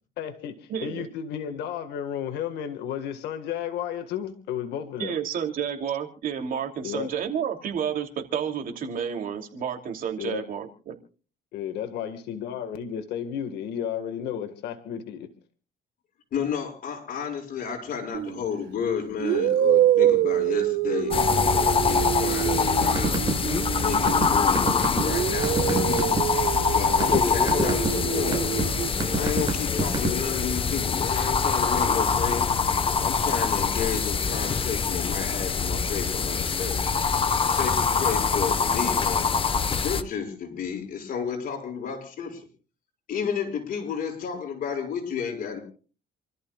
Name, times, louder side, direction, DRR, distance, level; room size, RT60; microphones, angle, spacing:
voice 1, 0.2-5.2 6.8-7.1 10.2-10.5 11.5-15.3, left 9 dB, 80° left, 7 dB, 1.7 m, -33 dB
voice 2, 0.7-1.1 5.0-11.0, right 8 dB, 55° right, 4 dB, 2.9 m, -30 dB
voice 3, 16.3-21.1 21.5-26.2 26.7-28.5 29.1-32.5 33.0-36.8 37.4-42.5 43.1-45.6, left 7 dB, 55° left, 1 dB, 6.7 m, -32 dB
sound 1, 18.1-18.4 19.2-24.5 25.0-28.9, right 12 dB, 80° right, 1.3 m, -26 dB
sound 2, 21.1-40.0, left 5 dB, 30° left, 1.1 m, -24 dB
sound 3, 22.8-23.3 23.6-26.2 26.7-27.2 27.5-27.9 28.3-28.6 29.0-30.3, right 4 dB, 25° right, 6.9 m, -25 dB
29.0 x 14.0 x 2.4 m, 0.39 s
cardioid pair, 110°, 17 cm